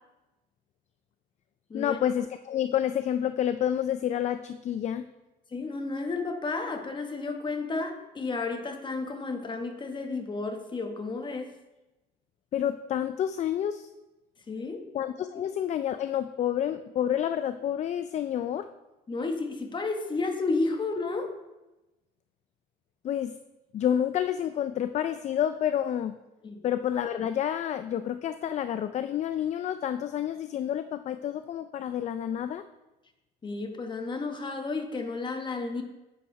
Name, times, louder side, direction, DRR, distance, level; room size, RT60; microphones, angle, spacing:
voice 1, 1.7-5.1 12.5-13.9 14.9-18.7 23.0-23.3 23.7-26.2 26.6-32.6, left 10 dB, 45° left, 11 dB, 0.4 m, -29 dB
voice 2, 5.5-11.5 14.5-14.9 19.1-21.3 26.4-26.6 33.4-35.8, left 3 dB, 30° left, 5 dB, 1.1 m, -32 dB
8.7 x 5.2 x 4.9 m, 1.0 s
cardioid pair, 110°, 17 cm